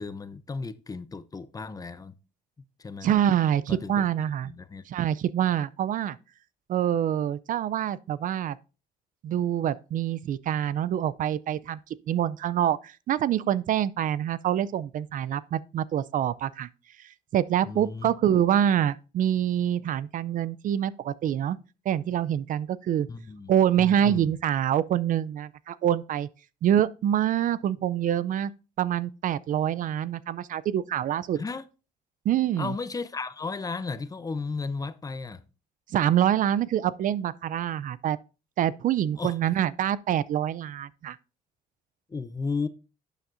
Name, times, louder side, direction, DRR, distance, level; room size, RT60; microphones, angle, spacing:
voice 1, 0.0-2.1 2.8-3.3 3.7-4.0 4.4-4.8 17.7-18.1 23.1-24.3 31.3-31.6 32.6-35.4 39.2-39.4 42.1-42.7, left 4 dB, 20° left, 0.6 m, -34 dB
voice 2, 3.0-4.5 4.9-6.2 6.7-8.6 9.2-11.8 12.1-16.7 17.3-21.6 21.9-23.1 23.5-26.3 26.6-28.5 28.8-31.4 32.3-32.7 35.9-38.2 38.6-41.2, right 10 dB, 50° right, 0.4 m, -26 dB
11.5 x 7.0 x 2.5 m
cardioid pair, 110°, 17 cm